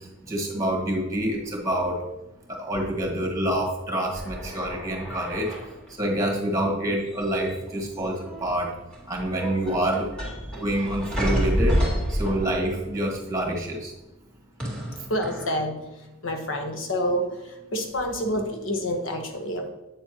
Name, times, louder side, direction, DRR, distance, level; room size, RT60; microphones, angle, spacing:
voice 1, 0.3-2.0 2.5-5.5 6.0-8.7 9.1-10.1 10.6-11.8 12.1-13.9, right 1 dB, 15° right, -1 dB, 1.9 m, -27 dB
sound 1, 4.1-5.9 7.1-7.7 7.9-8.5 8.9-12.9 14.6-15.5, equal, 5° left, 2.2 m, -29 dB
voice 2, 15.1-15.7 16.2-17.3 17.7-19.7, equal, 65° left, 4 dB, 1.2 m, -27 dB
8.4 x 7.2 x 3.0 m, 1.0 s
head